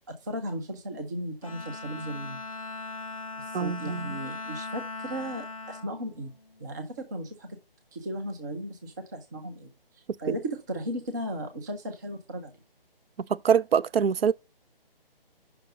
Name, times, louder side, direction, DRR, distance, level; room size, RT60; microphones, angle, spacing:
voice 1, 0.2-2.4 3.5-6.3 6.6-7.5 7.9-9.7 10.2-12.5, right 1 dB, 20° right, 0.6 m, -36 dB
Bowed string instrument, 1.4-6.9, left 3 dB, 35° left, 0.4 m, -39 dB
voice 2, 3.5-4.2 13.4-14.3, right 7 dB, 80° right, 0.5 m, -24 dB
5.8 x 5.2 x 5.0 m
figure-of-eight pair, 155°, 30 cm